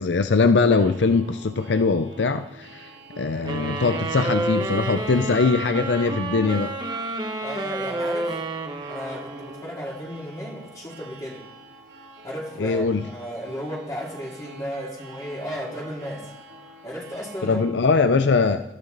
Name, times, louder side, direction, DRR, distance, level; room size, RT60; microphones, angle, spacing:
voice 1, 0.0-2.9 3.2-6.7 12.6-13.1 17.4-18.6, left 4 dB, 70° left, 10 dB, 0.6 m, -21 dB
sound 1, 0.8-17.7, right 2 dB, 90° right, 5.7 m, -46 dB
sound 2, 3.5-9.9, right 2 dB, 25° right, 1.3 m, -30 dB
voice 2, 7.4-8.4 8.9-11.4 12.2-16.3 16.8-17.6 18.4-18.5, equal, 20° left, -4 dB, 2.6 m, -34 dB
21.0 x 14.5 x 4.0 m, 0.95 s
head